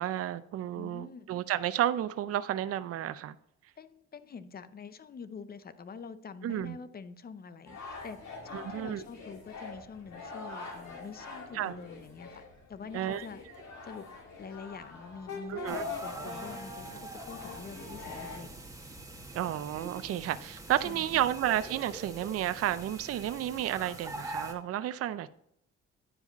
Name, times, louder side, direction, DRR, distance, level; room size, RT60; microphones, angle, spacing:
voice 1, 0.0-3.4 6.4-6.8 8.5-9.0 11.5-11.7 12.9-13.3 15.5-15.8 19.3-25.3, right 12 dB, 50° right, 14 dB, 0.5 m, -32 dB
voice 2, 0.8-1.3 3.8-7.8 8.0-8.2 8.4-12.4 12.7-13.4 13.8-14.1 14.4-18.5 20.8-21.2, left 5 dB, 30° left, 13 dB, 0.6 m, -46 dB
sound 1, 7.7-18.4, left 4 dB, 65° left, 2.0 m, -44 dB
sound 2, 15.7-24.5, right 2 dB, 10° right, 1.6 m, -44 dB
9.9 x 4.8 x 4.0 m, 0.74 s
cardioid pair, 90°, 30 cm